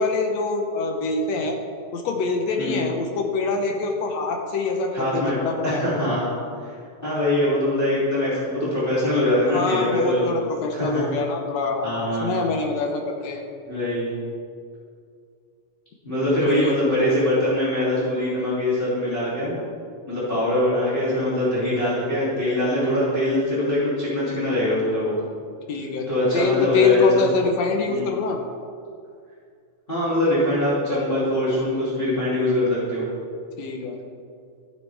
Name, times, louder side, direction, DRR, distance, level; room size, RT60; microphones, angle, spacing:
voice 1, 0.0-1.6 1.9-5.8 9.5-13.4 16.5-17.0 25.7-26.1 26.3-28.4 33.6-34.0, left 4 dB, 70° left, 3 dB, 2.2 m, -25 dB
voice 2, 4.9-6.3 6.6-6.7 7.0-10.3 10.7-11.0 11.8-12.4 13.7-14.1 16.0-19.5 20.1-25.2 26.1-27.2 27.8-28.1 29.9-33.1, left 1 dB, 20° left, -10 dB, 3.0 m, -23 dB
15.0 x 8.1 x 3.5 m, 2.2 s
omnidirectional pair, 3.3 m